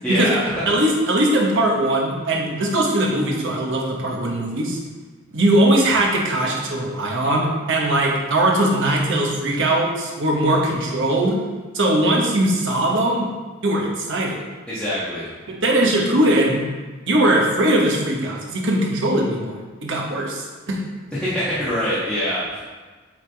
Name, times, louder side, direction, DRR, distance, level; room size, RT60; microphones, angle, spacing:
voice 1, 0.0-0.5 14.7-15.3 21.1-22.6, equal, 5° left, -12 dB, 1.2 m, -24 dB
voice 2, 0.7-4.8 5.3-11.4 11.7-13.3 13.6-14.4 15.5-16.6 17.1-20.8, right 1 dB, 65° right, -1 dB, 1.1 m, -20 dB
8.0 x 3.6 x 3.4 m, 1.4 s
head